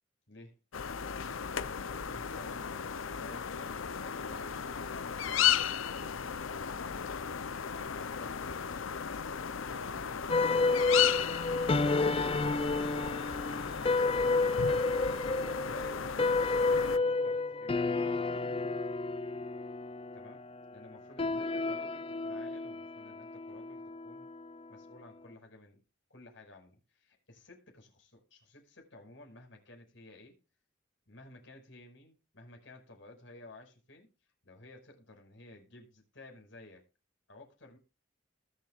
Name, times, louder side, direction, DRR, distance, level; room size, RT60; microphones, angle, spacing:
voice 1, 0.3-1.0 1.5-7.3 7.6-11.4 15.2-18.0 20.1-24.3 24.7-25.8 26.1-30.4 31.1-36.8 37.3-37.8, left 2 dB, 70° left, 5.5 m, -54 dB
sound 1, 0.7-17.0, left 8 dB, 90° left, 0.7 m, -35 dB
sound 2, 10.3-24.8, left 3 dB, 30° left, 0.5 m, -31 dB
20.0 x 7.4 x 2.5 m
head